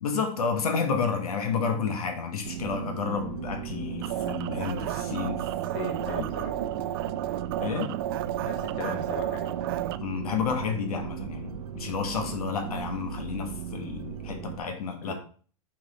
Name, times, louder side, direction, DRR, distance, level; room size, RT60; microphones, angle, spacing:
voice 1, 0.0-5.5 6.1-6.2 7.6-8.0 10.0-15.1, left 5 dB, 90° left, 5 dB, 1.5 m, -30 dB
sound 1, 2.4-14.6, right 9 dB, 80° right, 1.1 m, -37 dB
sound 2, 4.0-10.0, right 12 dB, 40° right, 0.4 m, -32 dB
voice 2, 5.7-6.5 8.4-9.6 15.0-15.1, left 2 dB, 35° left, 2 dB, 1.7 m, -37 dB
6.1 x 4.4 x 4.2 m, 0.42 s
supercardioid pair, 160°, 19 cm